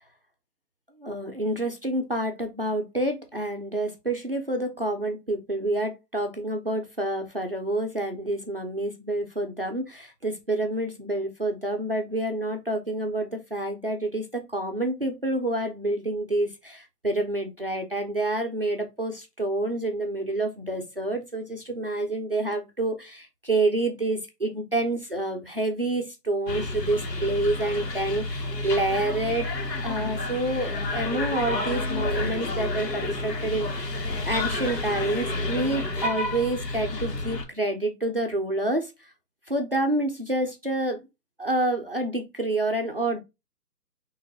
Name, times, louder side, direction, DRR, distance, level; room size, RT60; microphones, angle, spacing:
voice 1, 1.0-29.5 29.8-34.0 34.2-38.9 39.5-41.0 41.4-43.2, right 2 dB, 40° right, 0.4 m, -28 dB
sound 1, 26.5-37.4, left 2 dB, 75° left, 1.9 m, -30 dB
5.9 x 3.0 x 2.7 m
hypercardioid pair, 160°, 49 cm